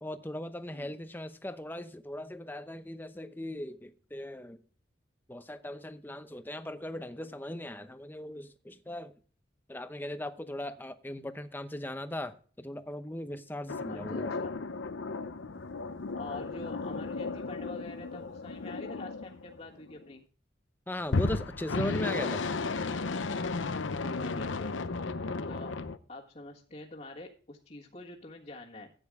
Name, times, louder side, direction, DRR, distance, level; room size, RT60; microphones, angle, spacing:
voice 1, 0.0-4.6 5.3-9.1 9.7-14.3 20.9-22.4, left 1 dB, 10° left, 10 dB, 0.7 m, -38 dB
sound 1, 13.7-20.0 21.1-26.0, left 3 dB, 90° left, 0.7 m, -34 dB
voice 2, 13.8-14.5 16.2-20.2 24.0-24.8 25.5-25.8 26.1-28.9, left 2 dB, 40° left, -4 dB, 1.7 m, -46 dB
14.0 x 9.2 x 3.6 m, 0.41 s
head